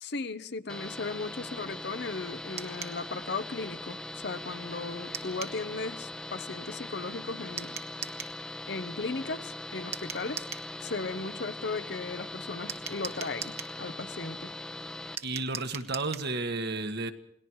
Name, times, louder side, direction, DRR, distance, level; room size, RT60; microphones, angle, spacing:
voice 1, 0.0-7.8 8.7-10.5 10.8-14.5, left 3 dB, 50° left, 11 dB, 0.9 m, -36 dB
sound 1, 0.7-15.2, left 1 dB, 5° left, 0.9 m, -41 dB
sound 2, 2.6-3.0 5.1-5.6 7.6-8.4 9.9-10.7 12.7-13.8 15.2-16.3, right 7 dB, 30° right, 1.3 m, -40 dB
voice 2, 15.2-17.1, right 3 dB, 50° right, 7 dB, 1.5 m, -32 dB
29.0 x 20.0 x 4.8 m, 0.74 s
head